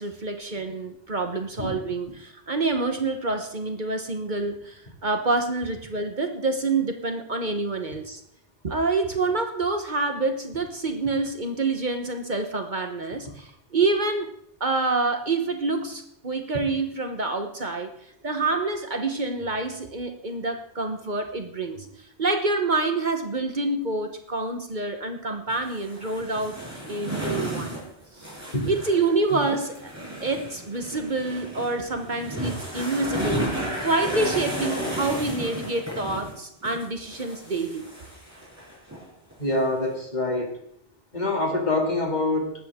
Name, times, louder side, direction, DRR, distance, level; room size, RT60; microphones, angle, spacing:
voice 1, 0.0-8.2 8.6-14.3 14.6-17.9 18.2-21.9 22.2-26.6 26.9-27.7 28.7-29.9 30.2-37.9, right 3 dB, 45° right, 6 dB, 1.3 m, -27 dB
sound 1, 25.5-36.3 36.6-39.0 39.3-39.4, right 1 dB, 15° right, 5.7 m, -33 dB
voice 2, 39.4-40.5 41.1-42.5, left 2 dB, 45° left, 1 dB, 2.8 m, -25 dB
19.0 x 13.0 x 3.7 m, 0.71 s
omnidirectional pair, 1.1 m